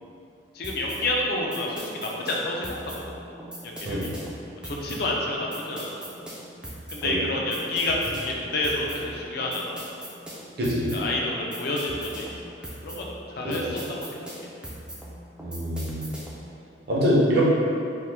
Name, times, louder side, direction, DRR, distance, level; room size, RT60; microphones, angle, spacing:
voice 1, 0.5-3.0 3.6-4.1 4.6-6.1 6.9-9.8 10.9-12.3 12.6-14.3, left 2 dB, 55° left, -2 dB, 0.4 m, -29 dB
sound 1, 0.6-16.5, right 1 dB, 5° right, 0.3 m, -40 dB
voice 2, 10.6-10.9 13.4-13.6 15.4-16.1 16.9-17.5, equal, 60° right, -6 dB, 0.6 m, -24 dB
2.9 x 2.1 x 3.3 m, 2.6 s
head